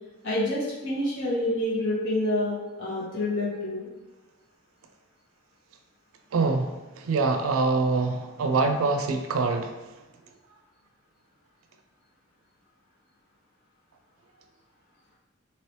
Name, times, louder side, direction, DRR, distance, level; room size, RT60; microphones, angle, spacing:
voice 1, 0.2-3.9, left 1 dB, 65° left, -9 dB, 1.4 m, -28 dB
voice 2, 6.3-9.9, right 3 dB, 85° right, 6 dB, 0.4 m, -25 dB
3.0 x 2.8 x 3.1 m, 1.1 s
head